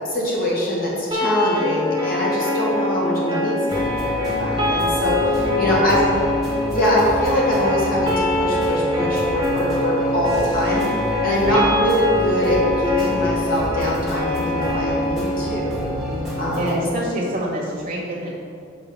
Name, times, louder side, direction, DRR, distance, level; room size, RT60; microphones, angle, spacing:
voice 1, 0.1-6.0 6.7-10.8 11.2-15.8 16.4-16.8, equal, 45° left, -5 dB, 1.9 m, -23 dB
sound 1, 1.1-17.1, left 2 dB, 25° right, 1.3 m, -24 dB
sound 2, 3.7-16.8, equal, ahead, 1.7 m, -31 dB
voice 2, 5.6-6.2 11.4-11.6 16.0-18.3, right 1 dB, 45° right, -5 dB, 1.9 m, -27 dB
7.0 x 5.4 x 5.7 m, 2.3 s
head